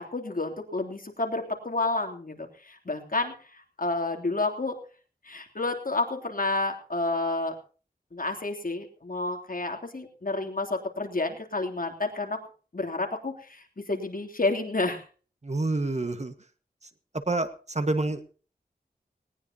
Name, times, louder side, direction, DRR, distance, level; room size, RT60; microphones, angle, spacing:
voice 1, 0.0-4.8 5.2-7.6 8.1-12.4 12.7-15.0, left 2 dB, 60° left, 2 dB, 3.2 m, -30 dB
voice 2, 15.4-16.3 17.3-18.2, right 2 dB, 45° right, 9 dB, 1.6 m, -28 dB
19.0 x 18.5 x 2.9 m, 0.39 s
wide cardioid pair, 65°, 16 cm